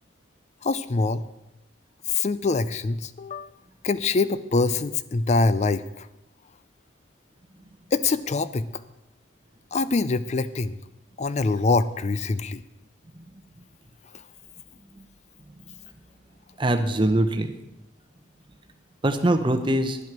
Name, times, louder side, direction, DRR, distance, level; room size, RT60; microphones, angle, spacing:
voice 1, 0.6-1.2 2.1-3.5 3.8-5.8 7.9-8.7 9.7-10.7 11.2-12.6, left 3 dB, 35° left, 15 dB, 0.4 m, -24 dB
voice 2, 16.6-17.5 19.0-20.0, right 1 dB, 25° right, 7 dB, 0.7 m, -23 dB
11.0 x 7.9 x 6.0 m, 0.95 s
head